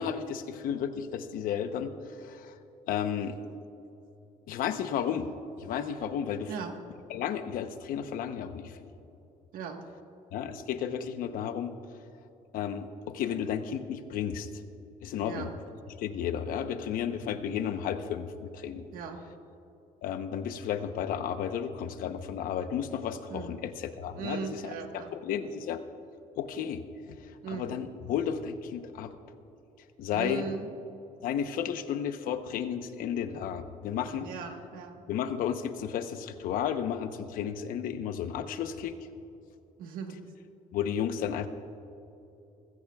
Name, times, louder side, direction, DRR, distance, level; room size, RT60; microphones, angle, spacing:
voice 1, 0.0-2.5 2.9-3.4 4.5-5.3 5.6-6.5 7.1-8.8 10.3-11.7 12.5-14.6 15.0-15.5 16.0-18.9 20.0-24.6 25.2-25.8 26.4-26.8 27.5-29.1 30.0-30.5 31.2-34.3 35.1-38.9 40.7-41.5, left 8 dB, 80° left, 9 dB, 0.9 m, -33 dB
voice 2, 9.5-9.8 15.2-15.6 18.9-19.2 23.3-23.6 24.2-25.1 27.4-27.7 30.1-30.7 34.2-35.0 39.8-40.2, right 6 dB, 85° right, 4 dB, 1.4 m, -38 dB
19.5 x 16.0 x 2.4 m, 2.8 s
cardioid pair, 130°, 14 cm